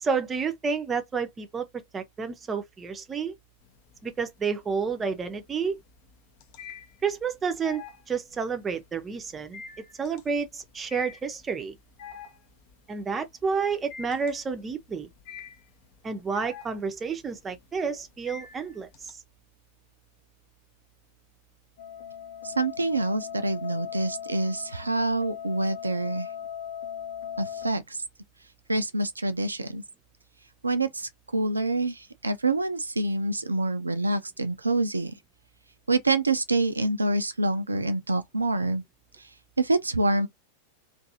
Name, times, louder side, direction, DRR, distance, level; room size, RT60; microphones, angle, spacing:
voice 1, 0.0-3.3 4.0-5.8 7.0-9.6 10.0-11.8 12.9-15.1 16.0-19.2, right 5 dB, 20° right, 0.6 m, -30 dB
sound 1, 3.6-4.3 4.6-19.1, left 6 dB, 45° left, 0.6 m, -46 dB
sound 2, 21.8-27.7, left 9 dB, 70° left, 1.3 m, -38 dB
voice 2, 22.4-26.3 27.4-28.0 28.7-29.8 30.6-35.2 35.9-38.8 39.2-39.3 39.6-40.3, right 2 dB, 80° right, 0.3 m, -26 dB
2.6 x 2.4 x 2.6 m
figure-of-eight pair, 90°, 0 cm